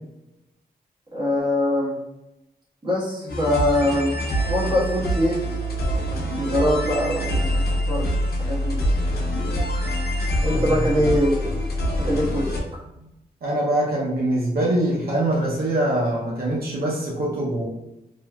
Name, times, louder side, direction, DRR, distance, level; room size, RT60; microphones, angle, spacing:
voice 1, 1.1-2.0 2.8-4.1 4.5-5.4 6.3-8.1 8.4-8.8 10.4-12.5 12.7-12.8, left 1 dB, 30° right, -6 dB, 1.4 m, -23 dB
sound 1, 3.3-12.6, equal, 75° left, 0.6 m, -25 dB
voice 2, 13.4-17.6, right 1 dB, 70° right, -5 dB, 0.7 m, -23 dB
2.7 x 2.6 x 2.3 m, 0.89 s
cardioid pair, 70°, 16 cm